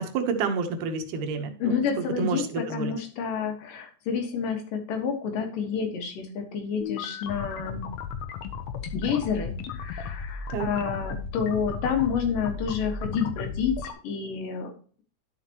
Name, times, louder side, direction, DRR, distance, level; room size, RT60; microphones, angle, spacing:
voice 1, 0.0-1.8 2.2-2.9 10.5-10.7, right 5 dB, 80° right, 7 dB, 2.5 m, -29 dB
voice 2, 1.6-7.9 8.9-14.7, left 6 dB, 90° left, 4 dB, 3.1 m, -29 dB
sound 1, 6.8-13.9, left 5 dB, 70° left, 1.9 m, -35 dB
11.5 x 5.9 x 2.9 m, 0.41 s
omnidirectional pair, 3.7 m